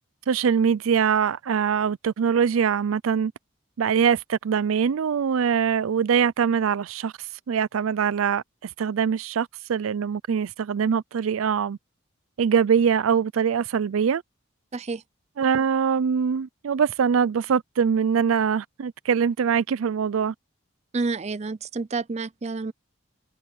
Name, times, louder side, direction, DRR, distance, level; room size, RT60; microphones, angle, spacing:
voice 1, 0.3-3.3 3.8-7.1 7.5-11.8 12.4-14.2 15.4-20.3, right 7 dB, 85° right, 0.4 m, -23 dB
voice 2, 14.7-15.0 20.9-22.7, right 3 dB, 30° right, 0.5 m, -29 dB
head